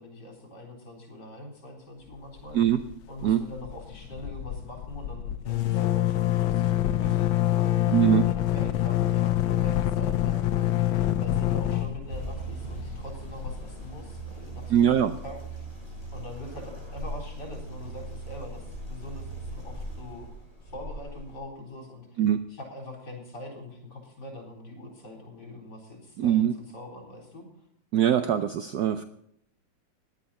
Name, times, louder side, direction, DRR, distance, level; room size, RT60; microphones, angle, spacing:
voice 1, 0.0-2.8 3.1-15.7 16.1-20.3 20.6-27.5, left 1 dB, 55° left, 1 dB, 4.6 m, -43 dB
sound 1, 2.4-2.9 3.2-3.3 3.6-14.2, left 13 dB, 85° left, 1.5 m, -26 dB
voice 2, 7.9-8.2 14.7-15.1 22.2-22.4 26.2-26.5 27.9-29.0, right 10 dB, 65° right, 10 dB, 1.2 m, -22 dB
sound 2, 12.1-21.4, right 2 dB, 10° right, 7.2 m, -40 dB
17.5 x 11.0 x 4.3 m, 0.73 s
omnidirectional pair, 2.1 m